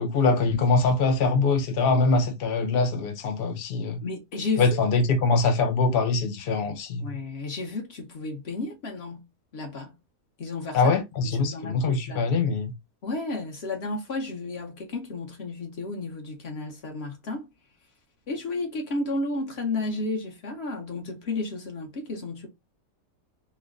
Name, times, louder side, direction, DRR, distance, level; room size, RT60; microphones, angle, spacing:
voice 1, 0.0-4.0 4.6-7.1 10.7-12.7, left 3 dB, 70° left, 0.5 m, -23 dB
voice 2, 4.0-4.8 7.0-9.3 9.5-9.9 10.4-11.0 11.3-12.3 13.0-17.5 18.3-22.5, left 3 dB, 45° left, 1.0 m, -32 dB
3.1 x 2.1 x 3.6 m
omnidirectional pair, 1.7 m